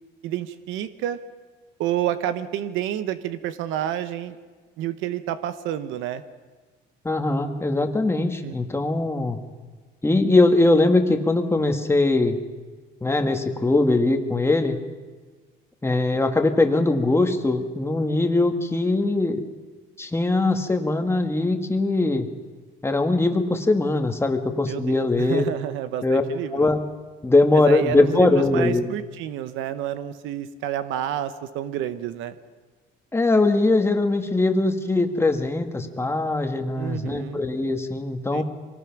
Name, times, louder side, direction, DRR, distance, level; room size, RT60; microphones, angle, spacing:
voice 1, 0.2-1.2 1.8-4.4 4.8-6.2 8.4-8.6 24.7-26.7 27.5-32.4 36.8-37.4 38.3-38.4, right 11 dB, 90° right, 12 dB, 0.9 m, -29 dB
voice 2, 7.0-9.4 10.0-12.4 13.0-14.8 15.8-19.4 20.0-22.3 22.8-25.5 26.0-26.2 26.5-26.8 27.2-28.8 33.1-38.4, left 2 dB, 15° left, 5 dB, 1.8 m, -21 dB
24.0 x 18.5 x 6.0 m, 1.4 s
cardioid pair, 105°, 20 cm